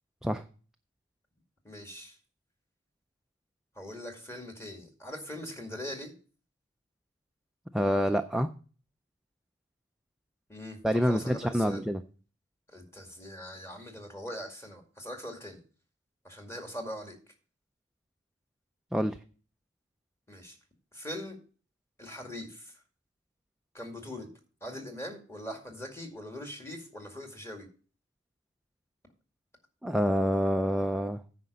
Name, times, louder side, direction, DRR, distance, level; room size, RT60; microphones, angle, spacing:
voice 1, 1.6-2.2 3.8-6.2 10.5-11.8 12.7-15.6 16.2-17.2 20.3-20.6 20.9-21.4 22.0-22.8 23.7-24.3 24.6-27.7, equal, 15° left, 3 dB, 2.1 m, -41 dB
voice 2, 7.7-8.5 10.8-12.0 18.9-19.2 29.8-31.2, equal, 5° right, 6 dB, 0.4 m, -27 dB
9.7 x 5.1 x 6.7 m, 0.39 s
head